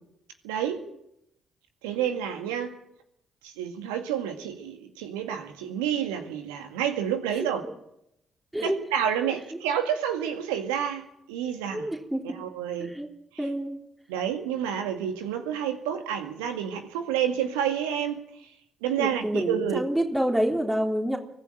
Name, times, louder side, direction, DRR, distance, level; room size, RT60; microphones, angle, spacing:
voice 1, 0.4-0.8 1.8-2.7 3.4-7.6 8.6-11.9 12.3-12.9 13.3-13.4 14.1-18.2 18.8-19.8, right 9 dB, 80° right, 6 dB, 2.1 m, -29 dB
voice 2, 11.7-12.2 12.8-13.1 13.4-13.8 19.0-21.2, right 1 dB, 10° right, 1 dB, 3.5 m, -27 dB
24.0 x 14.5 x 9.0 m, 0.81 s
hypercardioid pair, 45°, 0 cm